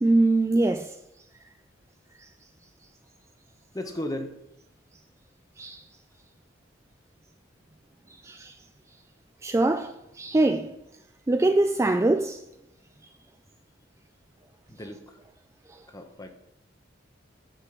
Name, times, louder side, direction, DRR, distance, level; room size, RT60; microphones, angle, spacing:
voice 1, 0.0-1.0 2.2-2.3 5.6-5.8 8.1-8.6 9.4-10.8 11.3-12.4 15.7-15.8, right 2 dB, 15° right, 0.3 m, -23 dB
voice 2, 3.7-4.4 14.7-15.2 15.9-16.3, left 1 dB, 20° left, 1.0 m, -35 dB
7.2 x 6.6 x 5.9 m
head